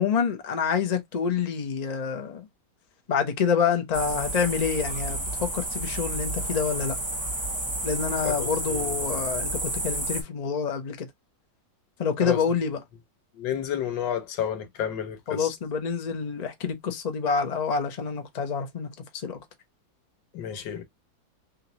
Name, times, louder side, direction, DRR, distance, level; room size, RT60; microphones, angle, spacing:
voice 1, 0.0-2.5 3.1-7.0 7.8-11.1 12.0-12.8 15.3-19.4, left 6 dB, 50° left, 0.4 m, -27 dB
sound 1, 3.9-10.2, right 1 dB, 15° right, 1.1 m, -31 dB
voice 2, 8.2-8.8 12.2-12.4 13.4-15.5 20.3-20.8, left 9 dB, 80° left, 1.6 m, -30 dB
3.8 x 3.2 x 2.9 m
omnidirectional pair, 2.0 m